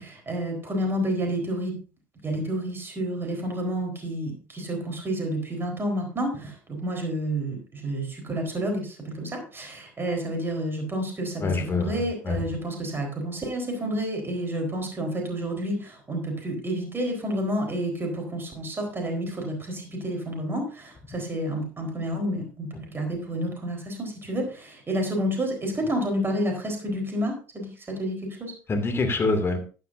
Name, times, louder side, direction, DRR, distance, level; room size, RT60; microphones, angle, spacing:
voice 1, 0.0-1.8 2.2-28.5, right 1 dB, 25° right, 2 dB, 4.2 m, -30 dB
voice 2, 11.4-12.4 28.7-29.6, left 3 dB, 25° left, 5 dB, 2.5 m, -25 dB
14.5 x 9.7 x 2.7 m, 0.36 s
hypercardioid pair, 70°, 9 cm